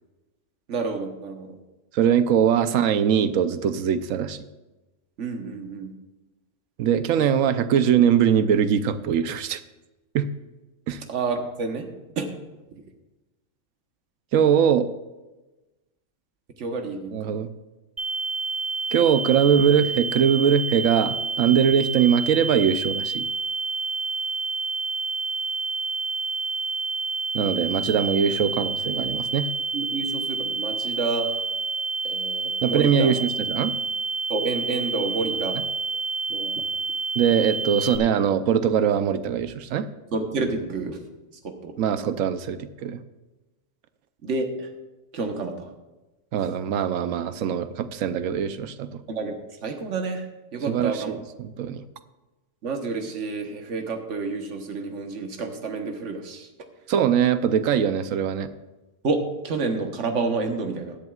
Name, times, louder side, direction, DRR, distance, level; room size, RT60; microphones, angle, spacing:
voice 1, 0.7-1.6 5.2-5.9 11.1-11.9 12.2-12.3 16.6-17.4 29.7-31.4 32.0-33.1 34.3-35.6 36.3-36.6 40.1-41.0 41.4-41.7 44.2-44.7 45.1-45.7 49.1-49.3 49.6-50.3 50.5-51.2 52.6-56.5 59.0-59.2 59.4-61.0, right 4 dB, 65° right, 4 dB, 1.5 m, -29 dB
voice 2, 1.9-4.4 6.8-9.6 10.1-10.3 10.9-11.0 14.3-14.9 17.1-17.5 18.9-23.2 27.3-29.5 32.6-33.7 37.2-39.9 41.8-43.0 46.3-49.0 50.7-51.8 56.9-58.5, right 8 dB, 90° right, 11 dB, 1.1 m, -22 dB
sound 1, 18.0-38.0, right 4 dB, 20° right, 0.5 m, -29 dB
17.0 x 10.5 x 2.4 m, 1.1 s
omnidirectional pair, 1.4 m